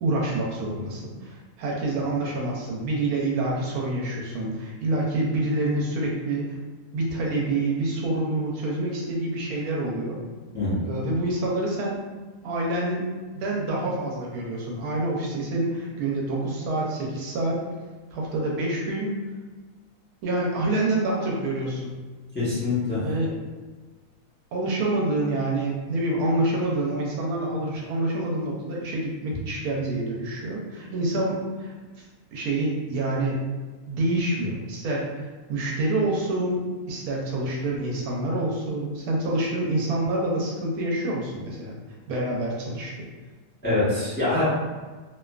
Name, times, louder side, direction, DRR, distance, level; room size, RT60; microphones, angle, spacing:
voice 1, 0.0-6.6 6.9-10.2 10.8-12.0 12.4-13.1 13.3-17.6 18.1-19.1 20.2-21.9 23.0-23.3 24.5-32.0 32.3-33.4 33.9-35.1 35.5-36.6 36.9-41.7 42.1-43.1, right 2 dB, 80° right, -3 dB, 1.1 m, -27 dB
voice 2, 22.3-23.0 43.6-44.4, left 2 dB, 10° left, -11 dB, 0.6 m, -24 dB
2.5 x 2.3 x 2.3 m, 1.3 s
omnidirectional pair, 1.6 m